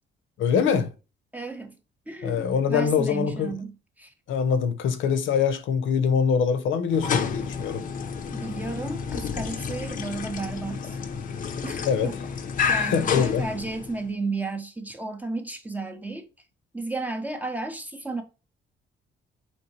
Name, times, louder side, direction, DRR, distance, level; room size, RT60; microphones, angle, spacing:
voice 1, 0.4-0.9 2.2-3.5 4.3-7.8 11.9-12.1 12.9-13.5, left 6 dB, 80° left, 0.7 m, -24 dB
voice 2, 1.3-1.8 2.1-4.1 8.3-11.0 11.6-12.1 12.7-16.3 16.7-18.2, right 3 dB, 10° right, 0.6 m, -33 dB
sound 1, 6.9-14.1, left 6 dB, 40° left, 0.5 m, -30 dB
4.3 x 3.1 x 3.0 m
cardioid pair, 155°, 20 cm